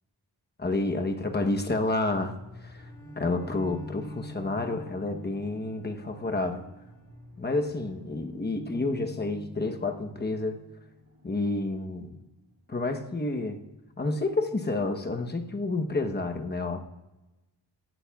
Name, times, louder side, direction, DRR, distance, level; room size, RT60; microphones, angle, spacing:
voice 1, 0.6-2.9 3.2-6.7 7.4-10.6 11.2-12.1 12.7-13.6 14.0-16.9, left 2 dB, 25° left, 5 dB, 1.0 m, -29 dB
sound 1, 1.7-14.5, left 2 dB, 35° right, 3.2 m, -47 dB
Bowed string instrument, 2.7-7.4, right 5 dB, 5° left, 2.4 m, -51 dB
17.5 x 11.5 x 2.4 m, 1.0 s
wide cardioid pair, 145°, 42 cm